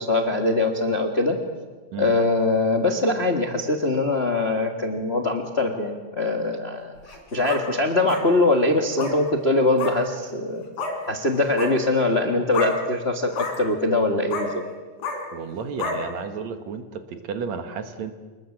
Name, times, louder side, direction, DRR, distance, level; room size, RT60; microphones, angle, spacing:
voice 1, 0.0-1.4 2.0-10.6 11.1-14.6, left 2 dB, 30° left, 4 dB, 1.1 m, -22 dB
sound 1, 7.0-7.6 8.1-8.2 8.9-9.2 9.8-9.9 10.8-10.9 11.4-11.7 12.5-12.7 13.3-13.6 14.3-14.5 15.0-15.2 15.8-16.0, left 3 dB, 70° left, 4.7 m, -29 dB
voice 2, 15.3-18.1, right 5 dB, 65° right, 8 dB, 2.7 m, -32 dB
26.5 x 21.0 x 7.2 m, 1.4 s
omnidirectional pair, 3.5 m